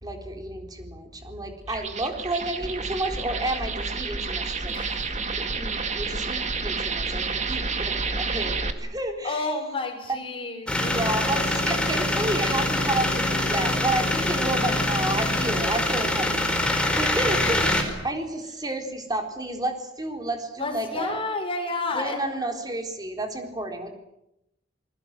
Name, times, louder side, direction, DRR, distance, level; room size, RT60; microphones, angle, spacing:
voice 1, 0.0-9.4 10.9-16.3 16.5-21.2 21.9-23.9, right 1 dB, 20° right, 4 dB, 3.9 m, -31 dB
sound 1, 1.6-8.7, right 4 dB, 40° right, 2.1 m, -29 dB
voice 2, 4.7-5.1 7.2-7.3 9.2-11.0 20.6-22.4, left 3 dB, 30° left, 3 dB, 6.2 m, -31 dB
sound 2, 10.7-17.8, left 1 dB, 5° left, 4.4 m, -24 dB
28.5 x 21.5 x 7.6 m, 0.84 s
head